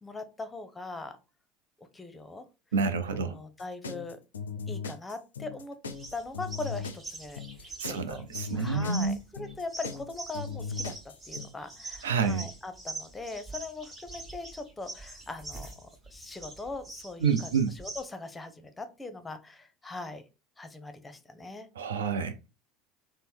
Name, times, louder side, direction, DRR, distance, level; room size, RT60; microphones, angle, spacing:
voice 1, 0.0-1.2 1.8-2.5 3.1-4.2 4.7-5.8 6.1-8.3 8.5-20.2 20.6-21.7, left 3 dB, 15° left, 0.7 m, -41 dB
voice 2, 2.7-3.4 7.8-9.2 12.0-12.5 17.2-17.7 21.8-22.5, right 5 dB, 75° right, 0.4 m, -28 dB
sound 1, 3.6-11.5, left 5 dB, 80° left, 0.4 m, -38 dB
sound 2, 5.8-18.0, right 2 dB, 25° right, 1.2 m, -44 dB
4.0 x 2.0 x 3.4 m
figure-of-eight pair, 70°, 0 cm